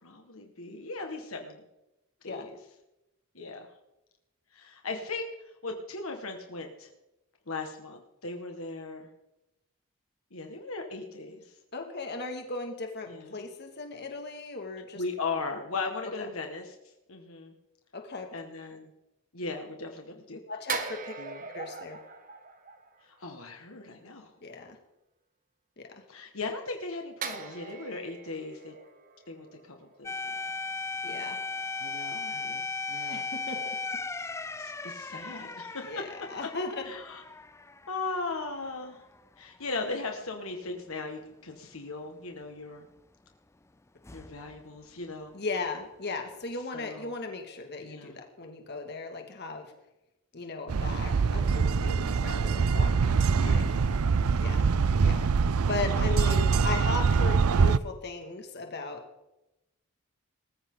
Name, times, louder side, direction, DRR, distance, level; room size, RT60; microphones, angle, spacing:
voice 1, 0.0-1.6 2.2-2.6 3.3-3.7 4.5-5.3 5.6-6.9 7.5-9.1 10.3-11.6 13.1-13.4 15.0-16.8 17.1-17.5 18.3-18.9 19.3-20.4 21.2-21.4 23.0-24.3 26.1-28.8 29.3-30.5 31.1-31.3 31.8-32.6 32.9-33.3 34.6-36.0 36.9-37.2 37.9-39.0 39.4-42.9 44.1-45.4 46.7-47.1 47.8-48.1 53.3-54.1, left 3 dB, 70° left, 3 dB, 1.8 m, -38 dB
voice 2, 11.7-15.0 16.2-16.3 17.9-18.3 20.5-21.2 21.5-22.0 24.4-24.8 25.8-26.0 31.0-31.4 33.1-33.6 35.8-36.8 45.3-49.7 50.3-53.6 54.4-54.7 55.0-55.3 55.7-59.0, left 3 dB, 50° left, 4 dB, 2.3 m, -37 dB
sound 1, 20.7-23.4 27.2-30.4 30.7-30.9, right 5 dB, 40° right, 1.5 m, -40 dB
sound 2, 30.0-38.7 39.0-39.2 44.0-44.6, left 4 dB, 15° left, 0.5 m, -37 dB
sound 3, 50.7-57.8, right 5 dB, 90° right, 0.5 m, -24 dB
20.0 x 14.5 x 4.0 m, 0.93 s
head